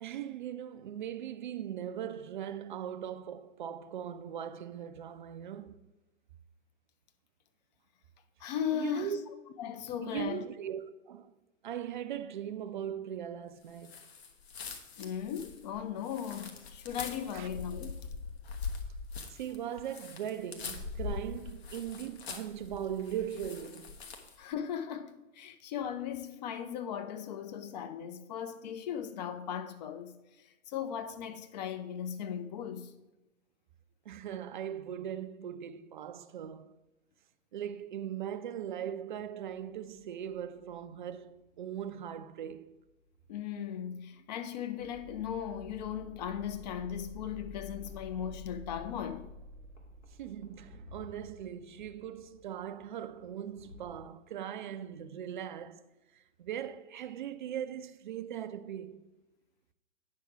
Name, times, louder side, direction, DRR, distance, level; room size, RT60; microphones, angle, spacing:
voice 1, 0.0-5.8 8.7-9.2 10.0-11.3 11.6-14.0 17.3-17.5 19.3-24.0 34.1-36.7 37.5-42.7 50.2-55.8 56.1-59.0, right 9 dB, 40° right, 0.5 m, -39 dB
voice 2, 8.4-9.1 9.6-10.4 15.0-18.1 24.4-30.1 30.7-32.9 43.3-49.3, left 9 dB, 30° left, 0.6 m, -37 dB
sound 1, 13.8-24.4, left 5 dB, 50° left, 1.3 m, -43 dB
sound 2, 39.4-54.1, left 1 dB, 70° left, 2.4 m, -60 dB
sound 3, 44.8-51.4, left 2 dB, 20° right, 0.9 m, -49 dB
9.4 x 5.9 x 4.7 m
figure-of-eight pair, 120°, 40 cm